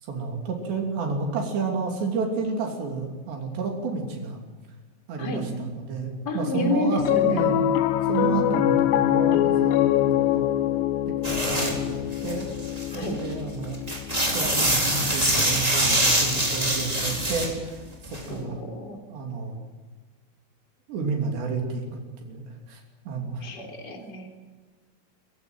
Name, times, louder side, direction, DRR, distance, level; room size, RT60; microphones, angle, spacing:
voice 1, 0.0-4.4 5.1-7.7 8.1-10.5 11.1-12.5 12.9-13.8 14.3-18.6 19.1-19.6 20.9-23.5, right 4 dB, 75° right, 2 dB, 5.2 m, -31 dB
voice 2, 6.2-7.5 8.1-8.7 12.9-13.2 18.3-19.0 23.4-24.3, left 2 dB, 25° left, 3 dB, 3.7 m, -30 dB
Piano, 7.0-17.5, left 12 dB, 75° left, 2.1 m, -25 dB
sound 1, 11.2-11.8 12.1-13.2 13.6-17.5 18.1-18.2, right 1 dB, 10° right, 3.6 m, -24 dB
26.0 x 16.0 x 9.1 m, 1.4 s
omnidirectional pair, 5.0 m